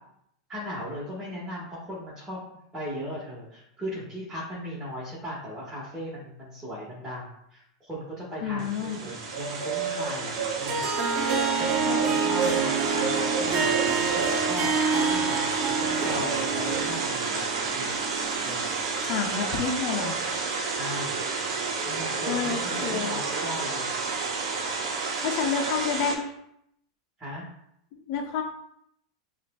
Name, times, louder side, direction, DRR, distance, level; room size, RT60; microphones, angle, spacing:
voice 1, 0.5-2.4 2.7-17.8 18.4-18.7 20.7-21.2 21.8-24.0 27.2-27.4, equal, 15° right, -7 dB, 1.5 m, -37 dB
voice 2, 8.4-9.0 11.9-12.0 19.1-20.2 22.3-23.2 25.2-26.3 27.9-28.4, left 6 dB, 55° left, 2 dB, 0.7 m, -29 dB
sound 1, 8.6-26.2, right 4 dB, 65° right, 0.8 m, -30 dB
Harp, 10.7-19.1, right 5 dB, 40° right, 0.6 m, -28 dB
5.6 x 2.5 x 2.3 m, 0.74 s
hypercardioid pair, 110°, 3 cm